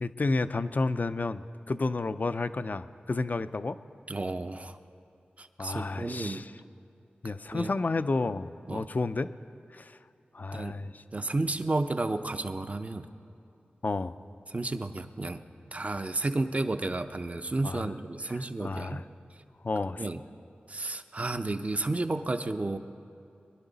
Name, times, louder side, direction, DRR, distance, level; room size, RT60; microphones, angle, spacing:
voice 1, 0.0-3.8 5.6-6.5 7.2-9.3 9.7-10.0 10.3-11.0 13.8-14.2 17.6-17.9 18.3-19.0 19.6-20.0, left 3 dB, 50° left, 13 dB, 0.4 m, -31 dB
voice 2, 4.1-4.8 5.4-6.4 7.5-7.7 8.7-8.8 10.5-10.8 11.1-13.1 14.5-15.4 15.7-19.0 20.0-20.2 20.7-22.8, right 2 dB, 40° right, 9 dB, 0.7 m, -32 dB
22.5 x 11.0 x 4.0 m, 2.6 s
cardioid pair, 45°, 4 cm